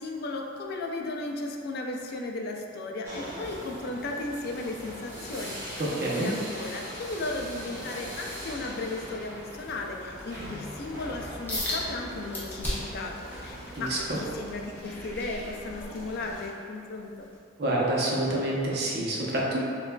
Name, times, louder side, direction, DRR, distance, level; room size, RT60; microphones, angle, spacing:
voice 1, 0.0-5.8 6.1-17.3, left 2 dB, 55° left, 1 dB, 0.4 m, -35 dB
sound 1, 3.0-14.5, equal, 15° right, 1.2 m, -41 dB
voice 2, 5.8-6.3 13.7-14.2 17.6-19.6, right 1 dB, 55° right, -5 dB, 0.7 m, -27 dB
sound 2, 10.1-16.5, left 1 dB, 80° left, 0.8 m, -45 dB
sound 3, 11.5-11.8 12.3-13.0 13.5-16.1 16.6-16.8 17.3-17.4, left 1 dB, 10° left, 0.9 m, -35 dB
6.5 x 2.3 x 2.2 m, 2.4 s
head